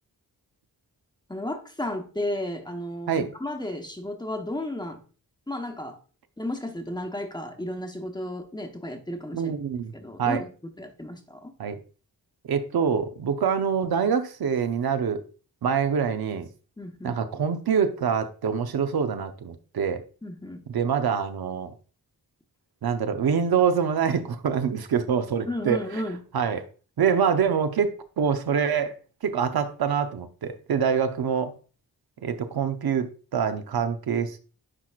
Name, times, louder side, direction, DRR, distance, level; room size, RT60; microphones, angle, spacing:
voice 1, 1.3-5.0 5.5-6.0 6.4-9.5 9.9-11.5 16.8-17.2 20.2-20.6 25.5-26.2, left 1 dB, 10° left, 0.9 m, -33 dB
voice 2, 9.3-9.9 10.2-10.4 11.6-11.8 12.4-15.2 15.6-16.5 17.0-20.0 20.7-21.7 22.8-26.0 26.3-26.6 27.0-28.9 29.2-31.5 32.2-34.4, right 7 dB, 75° right, 0.7 m, -25 dB
9.9 x 4.5 x 2.4 m
wide cardioid pair, 125°, 37 cm